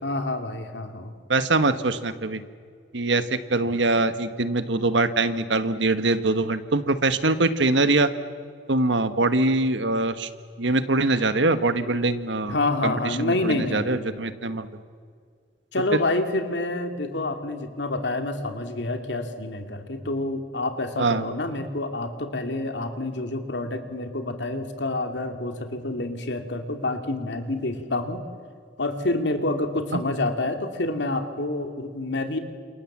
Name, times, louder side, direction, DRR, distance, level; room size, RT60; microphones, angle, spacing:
voice 1, 0.0-1.1 12.5-14.1 15.7-28.2 28.8-32.4, left 2 dB, 70° left, 5 dB, 2.6 m, -28 dB
voice 2, 1.3-2.4 2.9-8.1 8.7-10.3 10.6-12.6 12.8-14.7 21.0-21.2 29.9-30.0, right 2 dB, 90° right, 11 dB, 1.4 m, -23 dB
29.0 x 27.5 x 7.4 m, 2.1 s
head